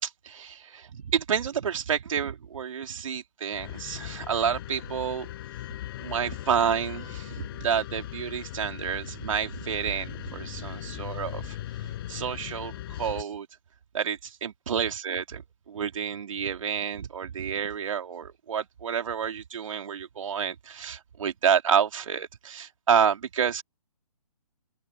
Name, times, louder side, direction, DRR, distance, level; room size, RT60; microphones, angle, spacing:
voice 1, 0.0-5.3 6.0-11.6 12.1-13.5 13.9-23.6, right 7 dB, 60° right, 4.0 m, -29 dB
sound 1, 3.5-13.2, left 13 dB, 40° left, 7.7 m, -39 dB
open air
hypercardioid pair, 145°, 19 cm